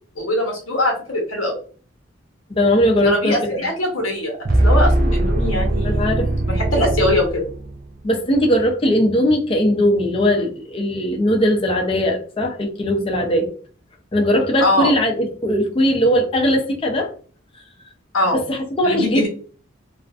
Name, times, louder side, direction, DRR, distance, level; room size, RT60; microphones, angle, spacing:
voice 1, 0.2-1.6 3.0-4.4 4.6-6.1 6.5-7.5 14.6-14.9 18.1-18.4 18.8-19.3, left 1 dB, 85° left, 0.8 m, -21 dB
voice 2, 2.5-3.7 5.8-6.3 8.0-13.5 14.1-17.1 18.3-19.3, equal, 25° left, 0.4 m, -19 dB
sound 1, 4.4-7.9, right 1 dB, 45° right, 0.5 m, -19 dB
2.4 x 2.4 x 2.3 m
head